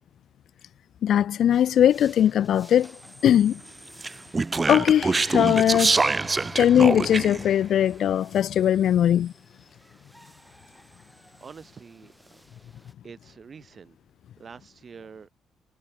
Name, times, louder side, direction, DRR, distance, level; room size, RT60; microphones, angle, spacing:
voice 1, 1.0-3.0 3.2-3.6 4.7-6.0 6.6-9.3, left 10 dB, 70° left, 0.6 m, -20 dB
sound 1, 1.5-12.9, equal, 5° right, 5.9 m, -54 dB
Speech, 4.0-7.5, right 3 dB, 25° right, 0.5 m, -24 dB
Bowed string instrument, 4.6-8.9, left 7 dB, 50° left, 2.0 m, -49 dB
voice 2, 11.4-12.4 13.0-14.0 14.4-15.3, right 6 dB, 45° right, 5.8 m, -46 dB
cardioid pair, 90°, 0 cm